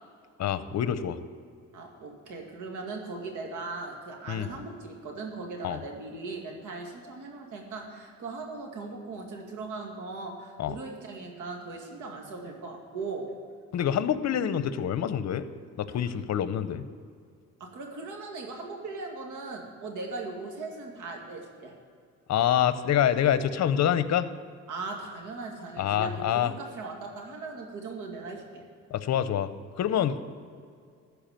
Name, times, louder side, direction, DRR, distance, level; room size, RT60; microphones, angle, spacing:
voice 1, 0.4-1.2 4.3-4.5 5.6-5.8 10.6-10.7 13.7-15.5 15.8-16.8 22.3-24.3 25.8-26.5 28.9-29.5 29.8-30.3, left 10 dB, 60° left, 13 dB, 0.7 m, -26 dB
voice 2, 1.7-13.3 17.6-21.7 23.4-23.5 24.7-28.6, right 3 dB, 80° right, 1 dB, 2.2 m, -39 dB
14.0 x 4.9 x 9.0 m, 2.2 s
cardioid pair, 90°, 30 cm